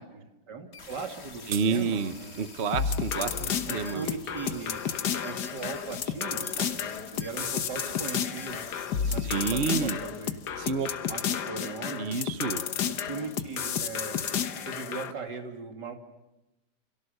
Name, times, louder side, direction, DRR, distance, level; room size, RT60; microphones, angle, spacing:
voice 1, 0.1-2.5 3.6-8.7 9.1-10.4 11.1-12.1 12.9-14.2 14.6-15.9, right 4 dB, 70° right, 4 dB, 3.2 m, -39 dB
sound 1, 0.7-9.6, left 4 dB, 35° left, 1.9 m, -48 dB
sound 2, 0.8-2.3 6.3-7.8, right 9 dB, 90° right, 1.9 m, -44 dB
voice 2, 1.5-4.1 9.0-10.0 10.6-10.9 12.0-12.6, right 5 dB, 45° right, 11 dB, 1.1 m, -29 dB
sound 3, 2.7-15.1, left 8 dB, 65° left, 1.7 m, -32 dB
29.5 x 26.0 x 6.7 m, 0.98 s
omnidirectional pair, 1.9 m